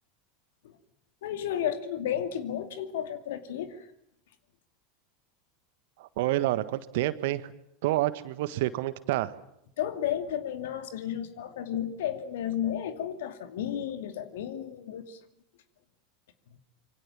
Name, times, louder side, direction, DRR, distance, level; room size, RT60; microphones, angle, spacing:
voice 1, 1.2-3.9 9.8-15.2, left 10 dB, 65° left, 9 dB, 2.4 m, -33 dB
voice 2, 6.0-7.5 7.8-9.3, right 16 dB, 60° right, 14 dB, 1.4 m, -28 dB
26.5 x 24.5 x 7.4 m, 0.76 s
figure-of-eight pair, 80°, 0 cm